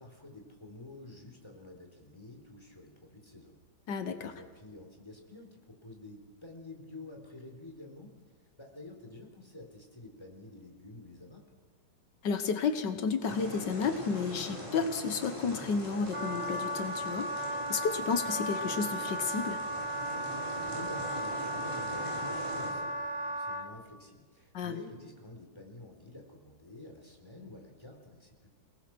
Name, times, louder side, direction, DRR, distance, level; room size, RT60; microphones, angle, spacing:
voice 1, 0.0-3.5 4.2-8.2 8.6-11.4 20.5-28.5, left 2 dB, 15° left, 2 dB, 4.2 m, -49 dB
voice 2, 3.9-4.3 12.2-19.6 24.5-24.8, left 5 dB, 85° left, 8 dB, 1.8 m, -32 dB
sound 1, 13.2-22.7, equal, 10° right, 7.6 m, -42 dB
Wind instrument woodwind instrument, 16.1-23.7, right 1 dB, 70° right, 2.4 m, -35 dB
30.0 x 19.0 x 6.2 m, 1.5 s
omnidirectional pair, 1.8 m